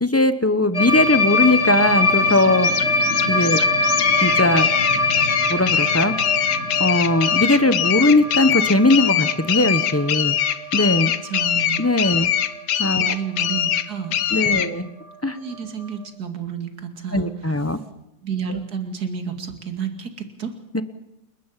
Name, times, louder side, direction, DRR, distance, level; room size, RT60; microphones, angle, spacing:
voice 1, 0.0-2.7 3.3-3.6 4.2-4.7 5.5-6.1 6.8-10.4 10.7-11.1 11.8-12.3 12.8-13.2 14.3-14.9 15.2-15.4 17.1-17.8 20.7-20.8, left 1 dB, 15° left, 12 dB, 0.6 m, -19 dB
sound 1, 0.7-12.6 12.9-13.1 13.4-13.6 13.9-14.0 14.3-14.4 15.5-15.6, left 2 dB, 35° left, 3.2 m, -23 dB
sound 2, 2.3-14.7, left 10 dB, 80° left, 1.7 m, -22 dB
voice 2, 11.2-11.8 12.9-14.2 14.5-14.8 15.3-17.3 18.2-20.5, right 7 dB, 55° right, 6 dB, 3.1 m, -30 dB
29.5 x 12.5 x 9.1 m, 0.91 s
omnidirectional pair, 2.1 m